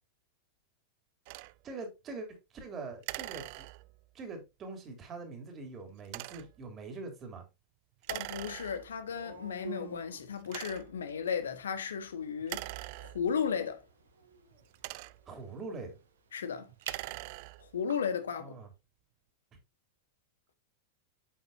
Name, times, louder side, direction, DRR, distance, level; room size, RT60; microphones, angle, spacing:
sound 1, 1.2-1.5 3.0-4.1 6.0-6.6 8.0-9.0 9.7-9.8 10.4-11.1 12.4-13.5 14.5-15.4 16.7-17.8, right 21 dB, 45° right, 0.4 m, -42 dB
voice 1, 1.6-3.7 4.1-7.4 15.3-16.0 18.3-18.7, right 3 dB, 25° right, 3.3 m, -43 dB
voice 2, 8.1-13.8 16.3-16.7 17.6-18.5, left 7 dB, 65° left, 1.3 m, -35 dB
sound 2, 8.5-16.0, right 5 dB, 90° right, 3.7 m, -52 dB
sound 3, 12.7-18.2, right 7 dB, 65° right, 1.5 m, -56 dB
8.5 x 8.0 x 2.7 m
figure-of-eight pair, 90°, 0 cm